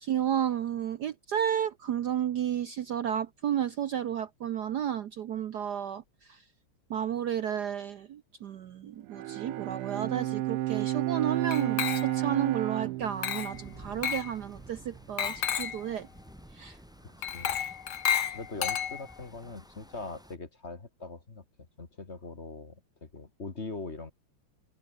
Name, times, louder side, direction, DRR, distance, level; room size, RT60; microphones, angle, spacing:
voice 1, 0.0-6.0 6.3-6.4 6.9-16.1 16.6-16.8, right 9 dB, 60° right, 1.2 m, -32 dB
Bowed string instrument, 9.1-14.6, right 16 dB, 90° right, 1.6 m, -32 dB
Glass, 11.5-12.4 13.2-13.6 14.0-14.3 15.2-15.8 17.2-19.3, left 9 dB, 70° left, 2.3 m, -31 dB
sound 1, 13.0-20.4, equal, ahead, 6.3 m, -53 dB
voice 2, 17.0-17.5 18.3-21.4 21.8-24.1, left 3 dB, 30° left, 2.2 m, -42 dB
open air
omnidirectional pair, 2.4 m